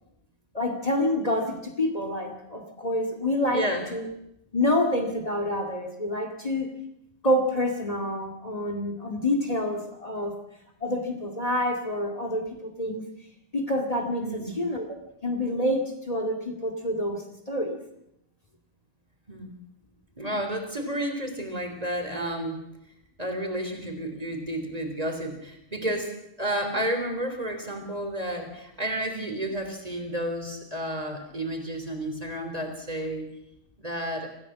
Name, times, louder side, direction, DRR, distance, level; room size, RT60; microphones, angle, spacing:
voice 1, 0.5-3.6 3.9-4.1 4.5-6.7 7.2-10.4 10.8-13.0 13.5-14.9 15.2-17.8 26.7-26.8, left 1 dB, 30° left, 4 dB, 2.4 m, -27 dB
voice 2, 3.5-3.9 14.2-14.6 19.3-19.5 20.2-22.6 23.2-33.3 33.8-34.3, right 1 dB, 30° right, 5 dB, 3.7 m, -31 dB
25.5 x 15.5 x 7.4 m, 0.82 s
omnidirectional pair, 1.3 m